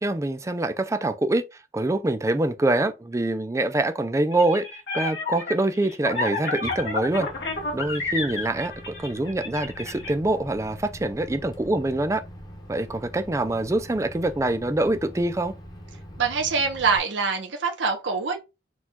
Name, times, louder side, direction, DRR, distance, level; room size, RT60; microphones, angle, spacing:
voice 1, 0.0-4.7 4.9-7.3 7.7-12.2 12.7-15.5, right 2 dB, 15° right, 0.4 m, -25 dB
sound 1, 4.3-10.1, left 3 dB, 65° left, 1.6 m, -30 dB
Microwave oven, 6.6-17.0, equal, 20° left, 0.9 m, -43 dB
voice 2, 16.2-18.4, right 5 dB, 90° right, 0.9 m, -24 dB
4.3 x 2.4 x 4.2 m
head